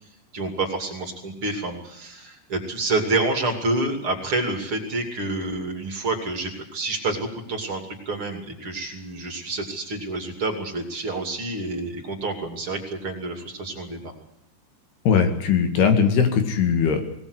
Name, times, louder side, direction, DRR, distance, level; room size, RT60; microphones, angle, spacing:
voice 1, 0.3-14.1, right 2 dB, 35° right, 3 dB, 2.9 m, -28 dB
voice 2, 15.1-17.0, left 6 dB, 70° left, 6 dB, 4.0 m, -19 dB
20.0 x 19.0 x 8.1 m, 0.75 s
omnidirectional pair, 5.1 m